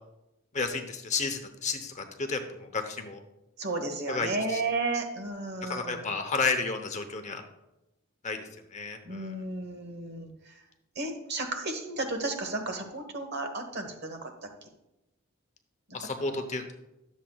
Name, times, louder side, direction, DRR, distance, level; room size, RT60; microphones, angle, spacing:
voice 1, 0.5-3.2 4.1-4.6 5.6-7.4 8.2-9.4 15.9-16.6, left 4 dB, 35° left, 6 dB, 0.8 m, -32 dB
voice 2, 3.6-6.0 9.0-10.6 10.9-14.5 15.9-16.1 16.4-16.5, right 2 dB, 50° right, 5 dB, 1.2 m, -33 dB
12.0 x 7.3 x 2.3 m, 0.93 s
head